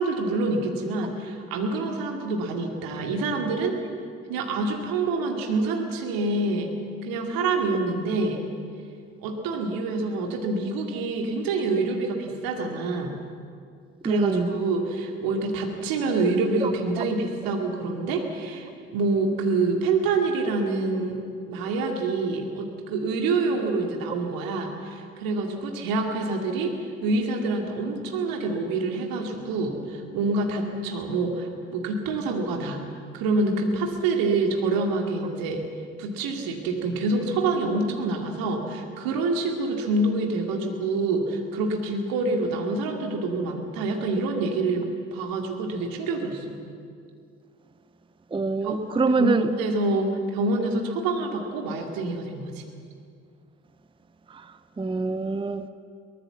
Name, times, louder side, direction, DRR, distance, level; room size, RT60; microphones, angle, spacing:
voice 1, 0.0-3.8 4.3-6.7 7.0-8.4 9.2-13.2 14.0-21.2 21.5-26.7 27.0-32.8 33.1-35.6 36.0-44.8 45.1-46.5 48.6-48.8 49.1-52.6, right 3 dB, 65° right, 2.5 m, -26 dB
voice 2, 14.0-14.5 16.6-16.7 17.0-17.1 48.3-49.5 54.3-54.5 54.8-55.7, right 3 dB, 15° right, 0.7 m, -25 dB
22.0 x 18.5 x 7.3 m
figure-of-eight pair, 40°, 38 cm